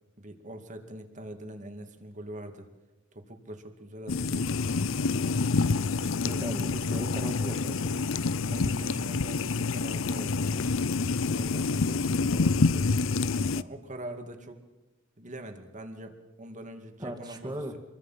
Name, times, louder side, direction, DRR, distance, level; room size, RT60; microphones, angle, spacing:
voice 1, 0.2-2.7 3.1-4.5 6.0-6.4 8.5-10.6 11.3-13.3 13.5-14.6 15.2-17.8, right 1 dB, 40° right, 6 dB, 2.3 m, -43 dB
sound 1, 4.1-13.6, left 4 dB, 85° left, 0.6 m, -27 dB
voice 2, 6.2-7.9 17.0-17.7, right 1 dB, 20° right, 4 dB, 2.4 m, -38 dB
27.0 x 22.5 x 5.8 m, 1.1 s
head